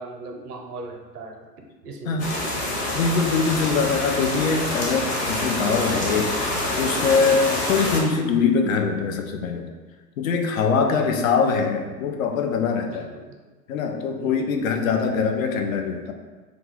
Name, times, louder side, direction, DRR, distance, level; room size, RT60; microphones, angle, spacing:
voice 1, 0.0-1.5 1.8-2.4 10.7-11.2 12.9-13.4 14.2-14.8, right 2 dB, 70° right, 2 dB, 0.7 m, -39 dB
sound 1, 2.2-8.0, left 1 dB, 25° left, 0.9 m, -26 dB
voice 2, 2.9-6.4 6.7-9.7 10.2-13.1 13.7-16.1, left 5 dB, 55° left, 4 dB, 0.5 m, -23 dB
2.5 x 2.3 x 3.6 m, 1.3 s
figure-of-eight pair, 100°, 49 cm